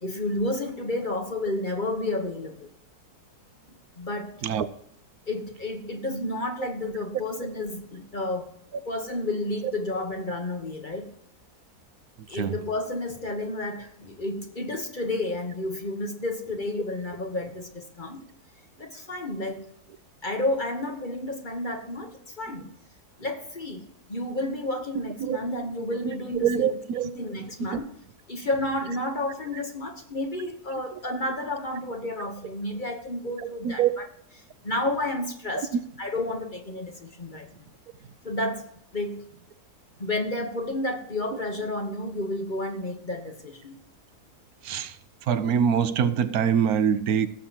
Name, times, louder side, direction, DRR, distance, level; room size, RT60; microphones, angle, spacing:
voice 1, 0.0-2.7 4.0-4.5 5.3-8.5 8.8-11.1 12.3-18.2 18.8-19.7 20.2-22.7 23.2-27.9 28.3-34.1 34.6-37.7 38.2-38.7 38.9-39.2 40.0-43.7, left 1 dB, 35° left, 1.1 m, -31 dB
voice 2, 26.4-27.1 27.6-27.8 33.6-33.9 35.7-35.8 44.6-44.9 45.3-47.3, right 8 dB, 70° right, 1.1 m, -24 dB
17.5 x 7.4 x 2.9 m
omnidirectional pair, 1.7 m